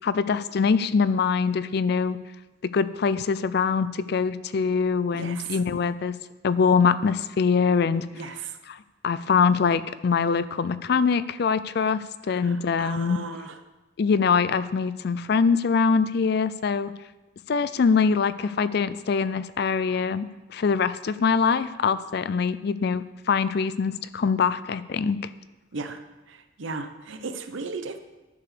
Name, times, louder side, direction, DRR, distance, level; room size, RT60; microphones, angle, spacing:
voice 1, 0.0-2.2 2.6-6.2 6.4-8.1 8.7-13.2 14.0-16.9 17.5-25.2, left 5 dB, 55° left, 15 dB, 0.4 m, -23 dB
voice 2, 5.1-5.6 8.1-8.6 12.3-13.6 25.7-26.0 26.3-28.0, right 4 dB, 85° right, 8 dB, 0.8 m, -36 dB
10.5 x 4.9 x 6.8 m, 1.1 s
head